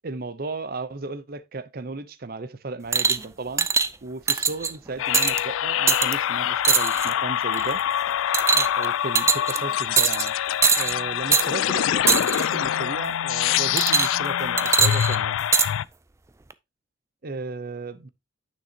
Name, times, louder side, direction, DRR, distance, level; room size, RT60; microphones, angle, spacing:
voice 1, 0.0-3.7 4.0-7.8 8.5-10.3 10.7-15.4 17.2-18.1, right 3 dB, 50° right, 0.7 m, -35 dB
sound 1, 2.9-3.2 3.6-3.9 4.3-4.7 5.1-5.4 5.9-6.1 6.6-7.1 7.5-7.8 8.3-8.9 9.2-9.6 10.0-10.3 10.6-10.9 11.3-11.5 12.1-12.5 13.8-14.3 14.6-15.7 16.5-16.6, right 5 dB, 15° right, 0.3 m, -21 dB
sound 2, 5.0-15.8, left 10 dB, 80° left, 0.3 m, -25 dB
9.4 x 6.2 x 2.8 m
head